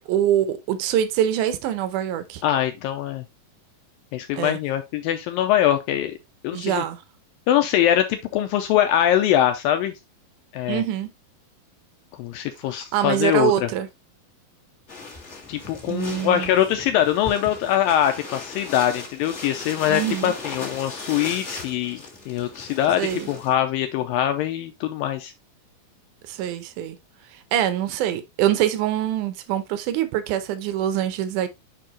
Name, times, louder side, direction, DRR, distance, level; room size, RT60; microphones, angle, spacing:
voice 1, 0.1-2.4 4.4-4.6 6.5-7.0 10.7-11.1 12.9-13.9 15.9-16.5 19.9-20.3 23.0-23.3 26.3-27.0 27.3-31.5, right 11 dB, 80° right, 1.8 m, -24 dB
voice 2, 2.4-3.2 4.1-6.2 6.4-6.8 7.5-9.9 10.5-10.8 12.2-13.7 15.5-25.3, left 11 dB, 80° left, 2.2 m, -23 dB
sound 1, 14.9-23.5, left 3 dB, 30° left, 1.2 m, -38 dB
7.4 x 4.6 x 2.9 m
omnidirectional pair, 4.5 m